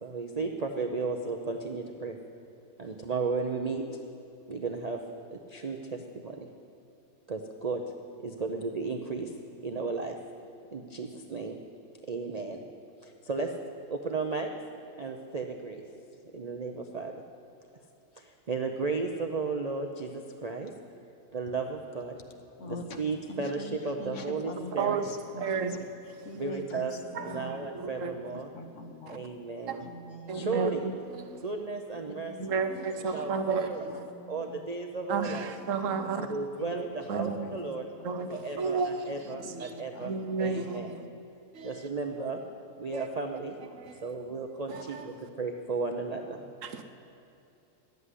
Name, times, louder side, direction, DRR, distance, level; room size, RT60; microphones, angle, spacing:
voice 1, 0.0-2.2 2.8-3.8 4.5-5.0 5.3-6.5 7.3-7.8 8.2-9.3 9.6-10.1 10.7-11.6 12.1-12.6 13.0-13.5 13.9-14.5 15.0-15.8 16.3-17.1 18.2-20.7 21.3-22.2 22.6-25.0 26.4-26.9 27.3-28.5 29.1-29.8 30.3-30.9 31.4-32.3 33.1-33.8 34.3-35.5 36.1-37.9 38.3-40.1 40.4-40.9 41.6-42.4 42.8-43.6 44.0-46.4, right 4 dB, 40° right, 0.6 m, -34 dB
voice 2, 22.6-23.0 23.3-25.8 26.2-27.7 28.5-29.3 29.8-30.5 31.9-33.1 33.4-34.7 35.3-36.2 36.6-38.4 39.1-41.1, left 2 dB, 55° left, 1.3 m, -45 dB
voice 3, 25.4-25.8 27.1-28.3 29.1-29.2 29.7-29.9 30.3-31.4 32.4-34.0 35.1-36.3 37.1-37.5 38.0-39.7 40.0-41.1 41.5-41.9 42.9-43.1 43.7-44.0 44.7-45.1 46.6-46.8, right 5 dB, 65° right, 1.1 m, -33 dB
12.5 x 8.1 x 9.8 m
omnidirectional pair, 1.5 m